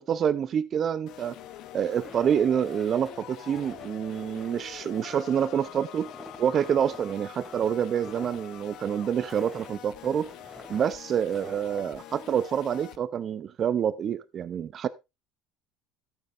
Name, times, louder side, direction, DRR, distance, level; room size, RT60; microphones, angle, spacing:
voice 1, 0.0-1.4 1.7-6.1 6.4-10.3 10.7-14.9, right 8 dB, 35° right, 0.5 m, -27 dB
sound 1, 1.1-13.0, left 12 dB, 60° left, 0.8 m, -45 dB
Walk footsteps, 1.9-11.9, left 1 dB, 5° left, 2.6 m, -48 dB
14.5 x 9.0 x 2.5 m
cardioid pair, 145°, 0 cm